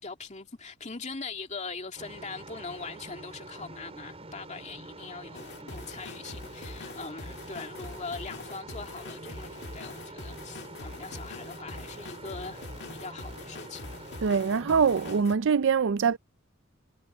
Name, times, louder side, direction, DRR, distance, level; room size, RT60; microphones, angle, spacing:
voice 1, 0.0-12.7 12.9-13.9, left 4 dB, 35° left, 2.5 m, -41 dB
sound 1, 2.0-15.2, right 2 dB, 30° right, 5.4 m, -46 dB
sound 2, 5.3-15.4, left 2 dB, 55° left, 1.8 m, -43 dB
voice 2, 14.2-16.2, right 6 dB, 60° right, 0.4 m, -24 dB
head